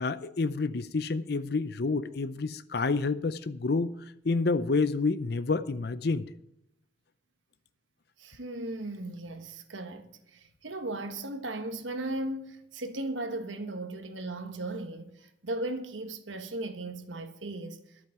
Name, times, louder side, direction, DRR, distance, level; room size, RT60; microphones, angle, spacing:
voice 1, 0.0-3.9 4.2-6.3, left 3 dB, 55° left, 0.6 m, -28 dB
voice 2, 8.2-17.8, right 2 dB, 90° right, 1.4 m, -37 dB
11.5 x 8.3 x 6.9 m
head